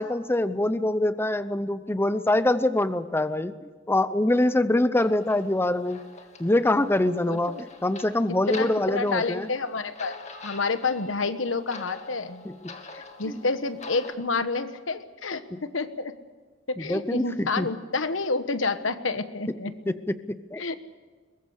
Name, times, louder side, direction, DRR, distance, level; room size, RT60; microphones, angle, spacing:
voice 1, 0.0-6.0 6.4-9.5 12.4-12.8 13.3-13.4 15.5-15.6 16.8-17.7 19.9-20.6, left 1 dB, 10° left, 12 dB, 0.7 m, -25 dB
sound 1, 4.9-14.1, left 3 dB, 35° left, 2.2 m, -45 dB
voice 2, 7.3-7.6 8.5-10.2 10.4-12.4 12.9-16.1 16.7-19.7 20.6-20.7, left 3 dB, 85° left, 11 dB, 1.3 m, -29 dB
22.5 x 20.5 x 6.5 m, 1.4 s
head